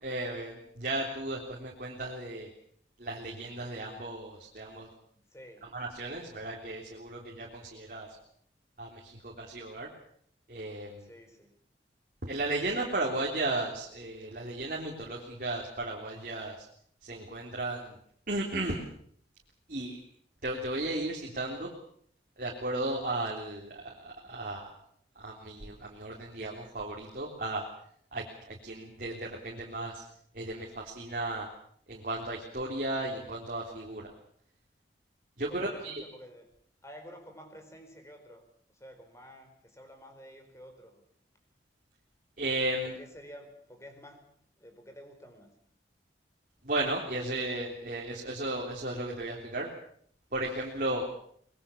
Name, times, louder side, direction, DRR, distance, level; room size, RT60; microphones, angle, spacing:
voice 1, 0.0-2.5 3.0-4.9 5.6-8.1 8.8-9.9 10.5-11.1 12.2-16.7 17.0-18.0 18.3-18.8 19.7-20.0 20.4-21.7 22.4-24.7 25.2-27.7 28.1-30.0 30.3-31.5 31.9-34.1 35.4-36.0 42.4-43.0 46.6-49.7 50.3-51.0, right 2 dB, 50° right, -1 dB, 3.6 m, -35 dB
voice 2, 5.3-5.7 11.0-11.5 35.4-36.4 36.8-38.4 38.7-41.0 42.8-44.2 44.6-45.5, equal, 15° left, 6 dB, 4.8 m, -50 dB
24.5 x 21.5 x 7.3 m, 0.64 s
head